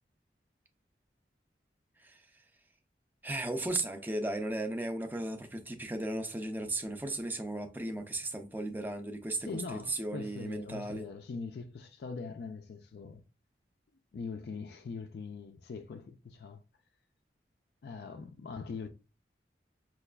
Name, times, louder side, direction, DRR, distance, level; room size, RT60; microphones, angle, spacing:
voice 1, 3.2-11.0, right 2 dB, 10° right, 0.4 m, -36 dB
voice 2, 9.4-13.2 14.1-16.6 17.8-18.9, left 4 dB, 65° left, 0.4 m, -42 dB
5.7 x 2.3 x 2.2 m
head